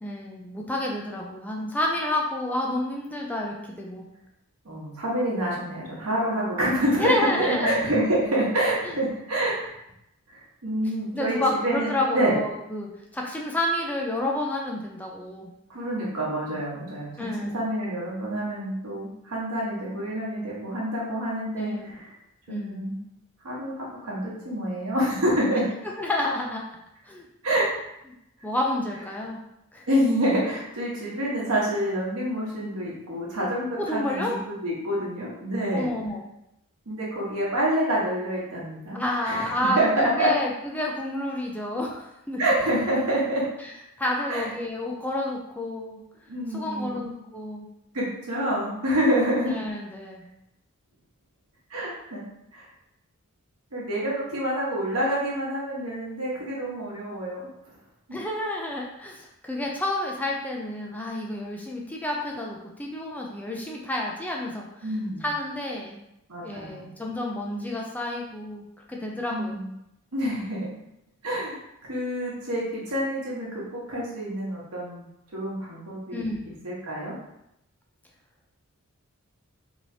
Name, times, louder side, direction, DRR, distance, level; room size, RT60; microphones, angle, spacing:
voice 1, 0.0-4.1 7.0-7.8 8.8-8.9 11.1-15.5 17.2-17.6 21.6-22.0 22.5-22.8 26.0-26.6 27.1-27.3 28.4-29.4 29.7-29.8 33.8-34.3 35.7-36.3 38.9-42.5 43.6-43.7 44.0-46.0 46.5-47.7 49.4-50.2 58.1-64.9 65.2-66.0 66.4-69.6 76.1-76.6, left 1 dB, 5° left, -1 dB, 0.3 m, -30 dB
voice 2, 4.6-9.7 10.3-12.3 15.7-22.1 22.5-23.0 23.4-25.6 27.4-27.7 29.9-34.2 34.5-35.9 36.9-39.0 39.2-40.3 42.4-43.4 44.3-44.5 46.3-47.0 47.9-49.5 51.7-52.2 52.5-52.7 53.7-57.4 64.8-65.2 66.3-66.9 69.3-69.7 70.1-70.7 71.2-75.1 75.3-76.3 76.6-77.1, right 1 dB, 75° right, -5 dB, 1.2 m, -27 dB
3.0 x 2.8 x 2.7 m, 0.83 s
head